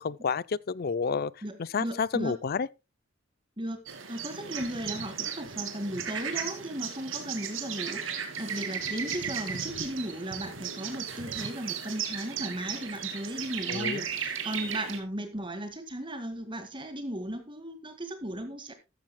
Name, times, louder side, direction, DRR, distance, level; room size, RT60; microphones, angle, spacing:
voice 1, 0.0-1.3 1.6-2.7 13.7-14.0, left 5 dB, 50° left, 0.5 m, -30 dB
voice 2, 1.4-2.4 3.6-18.7, right 1 dB, 25° right, 1.9 m, -36 dB
sound 1, 3.9-15.0, right 7 dB, 90° right, 2.7 m, -35 dB
14.0 x 13.5 x 2.2 m
head